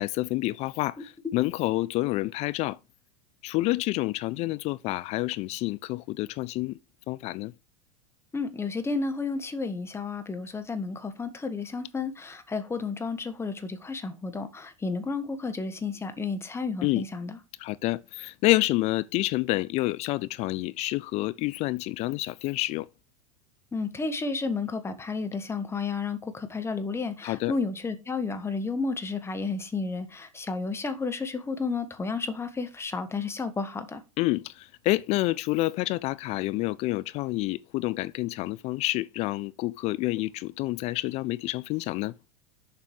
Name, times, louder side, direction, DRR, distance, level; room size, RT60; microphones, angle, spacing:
voice 1, 0.0-2.8 3.4-6.8 7.1-7.5 16.8-17.1 17.6-22.9 27.2-27.5 34.2-42.1, left 19 dB, 40° left, 0.4 m, -28 dB
voice 2, 8.3-17.4 23.7-34.0, left 4 dB, 15° left, 1.4 m, -32 dB
7.4 x 5.1 x 4.6 m
figure-of-eight pair, 85°, 17 cm